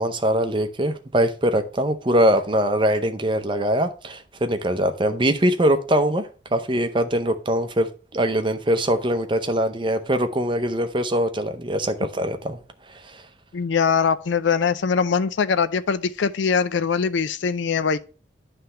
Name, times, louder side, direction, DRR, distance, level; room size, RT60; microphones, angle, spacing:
voice 1, 0.0-12.6, right 1 dB, 25° right, 0.6 m, -22 dB
voice 2, 13.5-18.0, left 6 dB, 65° left, 0.4 m, -22 dB
9.5 x 3.4 x 5.5 m
head